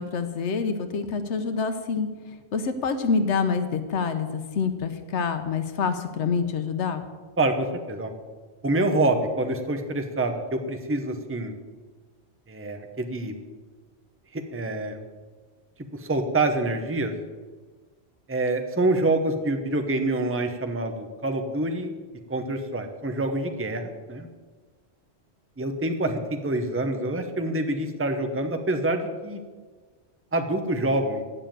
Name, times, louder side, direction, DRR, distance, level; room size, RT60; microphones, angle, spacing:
voice 1, 0.0-2.1 2.5-7.0, left 5 dB, 85° left, 9 dB, 1.1 m, -26 dB
voice 2, 7.4-8.1 8.6-11.5 12.5-13.3 14.3-15.0 15.9-17.1 18.3-21.9 22.3-24.3 25.6-29.4 30.3-31.2, right 2 dB, 15° right, 6 dB, 0.8 m, -26 dB
9.8 x 7.3 x 8.9 m, 1.4 s
omnidirectional pair, 1.1 m